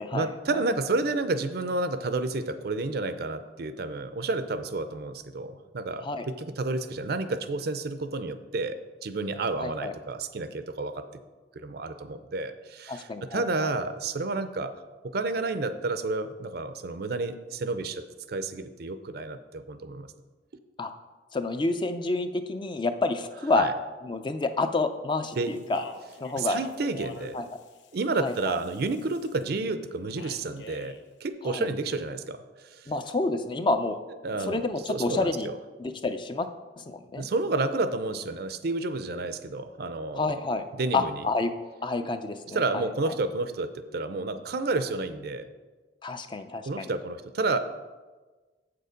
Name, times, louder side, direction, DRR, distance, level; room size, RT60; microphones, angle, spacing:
voice 1, 0.1-11.1 11.5-14.8 15.0-18.0 18.3-20.1 23.6-23.7 25.4-25.5 26.4-27.4 27.9-32.9 34.2-35.3 37.2-40.4 40.7-41.2 42.5-45.5 46.7-47.6, right 3 dB, 60° right, 11 dB, 0.5 m, -30 dB
voice 2, 9.6-9.9 12.9-13.7 20.8-20.9 21.3-23.7 24.0-25.8 26.2-26.6 27.3-27.5 28.2-28.6 31.4-31.7 32.9-34.0 34.4-35.5 35.8-36.5 36.8-37.3 40.1-40.7 40.9-41.5 41.8-43.1 46.0-46.9, left 3 dB, 25° left, 9 dB, 0.5 m, -29 dB
Speech, 25.3-29.4 30.2-31.0, left 3 dB, 85° left, 0.8 m, -45 dB
7.6 x 6.7 x 5.1 m, 1.3 s
head